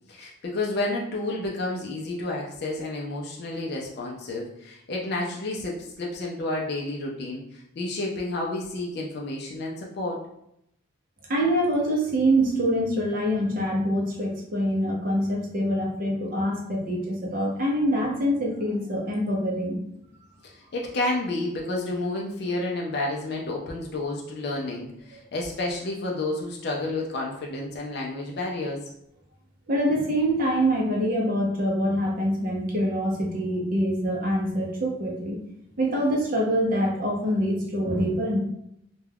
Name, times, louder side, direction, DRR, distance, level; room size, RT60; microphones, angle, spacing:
voice 1, 0.1-10.2 20.4-28.9, left 2 dB, 50° left, -1 dB, 0.4 m, -30 dB
voice 2, 11.3-19.8 29.7-35.4 35.8-38.4, equal, 45° right, -1 dB, 0.6 m, -25 dB
2.3 x 2.2 x 3.3 m, 0.77 s
head